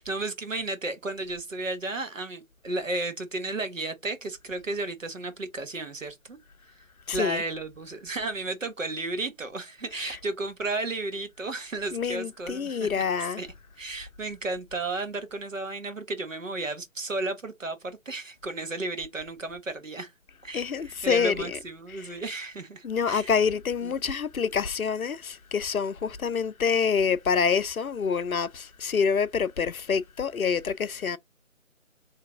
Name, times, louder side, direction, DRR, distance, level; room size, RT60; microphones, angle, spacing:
voice 1, 0.0-6.4 7.1-13.5 13.8-20.1 20.4-23.4 23.8-23.9, right 2 dB, 65° right, 1.2 m, -33 dB
voice 2, 7.1-7.4 10.0-10.2 11.9-13.4 20.5-21.6 21.9-22.2 22.8-31.2, left 6 dB, 90° left, 0.6 m, -27 dB
3.3 x 2.9 x 3.6 m
figure-of-eight pair, 155°, 41 cm